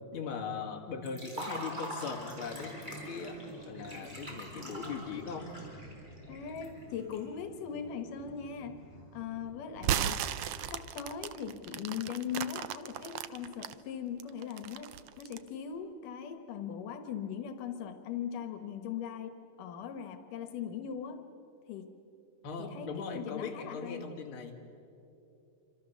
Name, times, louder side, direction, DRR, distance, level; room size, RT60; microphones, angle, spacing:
voice 1, 0.1-5.5 22.4-24.6, left 5 dB, 45° left, 2 dB, 2.8 m, -39 dB
Liquid, 1.1-7.2, right 1 dB, 15° right, 4.6 m, -44 dB
sound 1, 2.1-10.6, right 1 dB, 45° right, 6.1 m, -51 dB
voice 2, 6.3-8.8 9.1-10.2 10.7-14.9 15.2-21.2 21.7-22.0 22.6-24.1, left 8 dB, 80° left, 8 dB, 2.8 m, -40 dB
sound 2, 9.8-13.7 14.2-15.5, right 10 dB, 90° right, 1.3 m, -35 dB
27.0 x 26.0 x 7.1 m, 2.8 s
omnidirectional pair, 3.7 m